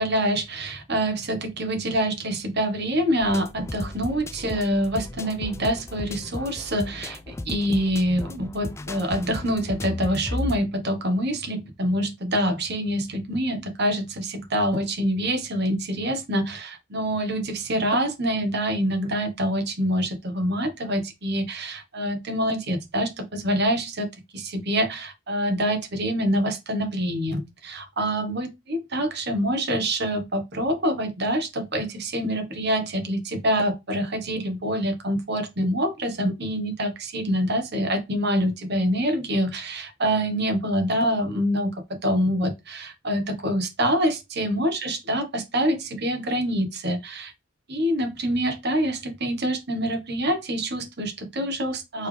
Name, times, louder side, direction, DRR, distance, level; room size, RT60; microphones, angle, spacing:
voice 1, 0.0-41.7 42.0-47.3 47.7-52.1, equal, 60° right, 1.3 m, -26 dB
sound 1, 3.2-10.6, left 1 dB, 15° left, 0.3 m, -35 dB
4.4 x 3.4 x 3.4 m
head